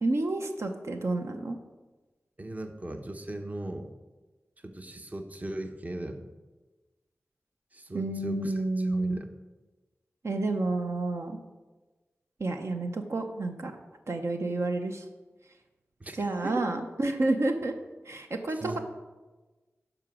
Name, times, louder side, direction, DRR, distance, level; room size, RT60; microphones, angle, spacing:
voice 1, 0.0-1.6 7.9-9.2 10.2-11.4 12.4-13.7 14.1-15.1 16.2-17.7 18.0-18.8, right 2 dB, 65° right, 5 dB, 0.8 m, -29 dB
voice 2, 2.4-3.9 4.6-6.3 7.7-9.3 16.0-16.2 16.4-16.6 18.5-18.8, right 1 dB, 30° right, 5 dB, 0.9 m, -38 dB
11.0 x 5.0 x 6.2 m, 1.2 s
wide cardioid pair, 75°, 5 cm